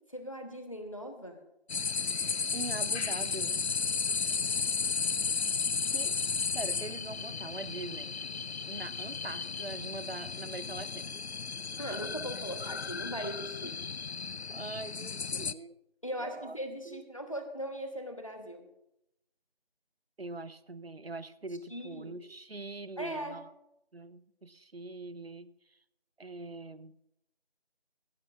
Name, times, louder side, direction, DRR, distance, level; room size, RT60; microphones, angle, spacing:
voice 1, 0.1-1.4 11.8-13.7 16.0-18.7 21.7-22.2 23.0-23.4, equal, 30° left, 6 dB, 1.2 m, -39 dB
sound 1, 1.7-15.5, left 5 dB, 85° left, 0.6 m, -34 dB
voice 2, 2.5-3.7 5.9-6.1 6.5-8.1 8.7-11.2 11.9-12.0 14.5-15.8 16.2-16.6 16.9-17.0 20.2-23.5 23.9-25.8 26.2-27.1, right 3 dB, 70° right, 15 dB, 0.8 m, -43 dB
16.5 x 15.5 x 2.5 m, 0.86 s
figure-of-eight pair, 180°, 31 cm